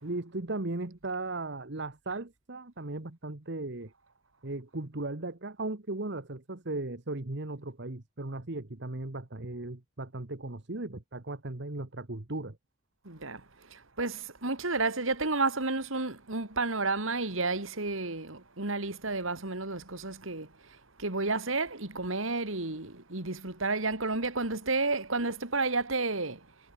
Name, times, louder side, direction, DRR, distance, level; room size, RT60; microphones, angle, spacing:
voice 1, 0.0-3.9 4.4-12.6, right 2 dB, 55° right, 1.5 m, -37 dB
voice 2, 13.0-26.5, right 3 dB, 70° right, 3.0 m, -31 dB
head